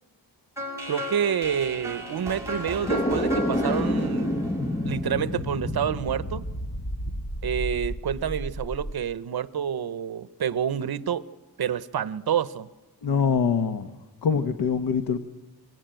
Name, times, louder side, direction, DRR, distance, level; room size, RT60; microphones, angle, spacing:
sound 1, 0.6-5.5, left 1 dB, 5° right, 6.6 m, -35 dB
voice 1, 0.9-4.3 4.8-6.4 7.0-7.1 7.4-11.2 11.6-12.7, right 8 dB, 75° right, 14 dB, 0.9 m, -28 dB
sound 2, 2.9-8.9, equal, 15° left, 1.1 m, -29 dB
voice 2, 13.0-13.9 14.2-15.2, left 6 dB, 80° left, 8 dB, 1.2 m, -24 dB
27.0 x 24.0 x 9.1 m, 1.3 s
wide cardioid pair, 150°, 38 cm